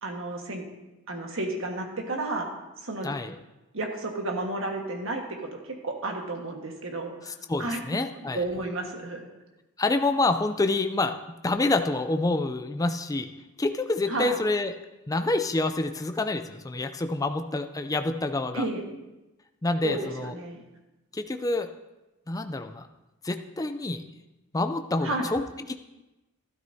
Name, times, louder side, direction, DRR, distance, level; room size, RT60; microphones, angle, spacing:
voice 1, 0.0-0.6 1.1-2.5 2.8-3.1 3.7-7.3 7.6-7.8 8.1-9.2 14.1-14.4 18.5-18.8 19.8-20.6 25.0-25.3, right 2 dB, 60° right, 2 dB, 1.6 m, -32 dB
voice 2, 3.0-3.3 7.5-8.4 9.8-11.1 11.4-13.3 13.6-14.7 15.1-18.6 19.6-20.3 21.1-21.7 22.3-22.9 23.2-24.0 24.5-25.4 25.7-25.8, left 2 dB, 15° left, 8 dB, 0.4 m, -27 dB
12.5 x 12.5 x 2.8 m, 1.0 s
head